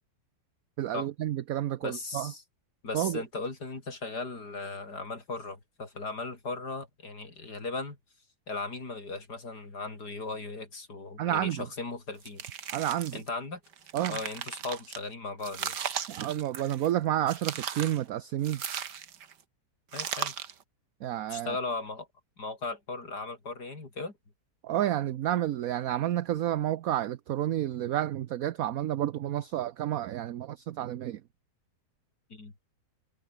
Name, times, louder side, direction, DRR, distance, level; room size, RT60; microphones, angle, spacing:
voice 1, 0.8-2.3 2.9-3.2 11.2-11.7 12.7-13.2 13.9-14.2 16.1-18.6 21.0-21.6 24.6-31.2, right 12 dB, 65° right, 1.1 m, -30 dB
voice 2, 1.8-2.4 2.8-8.0 8.5-12.4 13.1-13.6 14.1-15.8 19.9-20.3 21.3-22.1 22.4-24.1 32.3-32.5, left 3 dB, 75° left, 5.0 m, -37 dB
sound 1, 12.2-13.3 13.7-15.0 15.4-16.9 17.3-18.0 18.4-19.3 19.9-20.6, right 8 dB, 80° right, 2.1 m, -37 dB
omnidirectional pair, 1.8 m